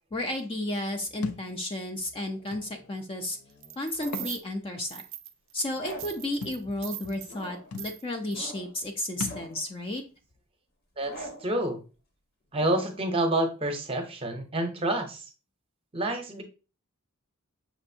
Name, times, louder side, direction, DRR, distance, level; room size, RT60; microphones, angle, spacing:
voice 1, 0.1-3.4 3.8-5.0 5.5-10.0, left 1 dB, 25° left, 4 dB, 0.4 m, -33 dB
Thump thud, 1.2-1.5 2.5-2.6 4.0-4.3 4.8-4.9 6.4-6.6 7.4-7.5 7.7-7.9 9.2-9.5, left 4 dB, 90° left, 0.5 m, -36 dB
sound 1, 2.3-4.4 5.7-6.3 7.3-7.8 8.3-8.8 9.3-9.7 11.0-11.6 12.5-13.1, equal, 45° left, 0.8 m, -45 dB
sound 2, 3.6-4.4 4.9-5.6 5.9-7.3 7.7-8.0 8.3-8.5, right 14 dB, 60° right, 0.4 m, -41 dB
voice 2, 11.0-11.8 12.5-15.3 15.9-16.4, right 1 dB, 25° right, 5 dB, 0.7 m, -28 dB
6.0 x 2.5 x 2.6 m, 0.33 s
head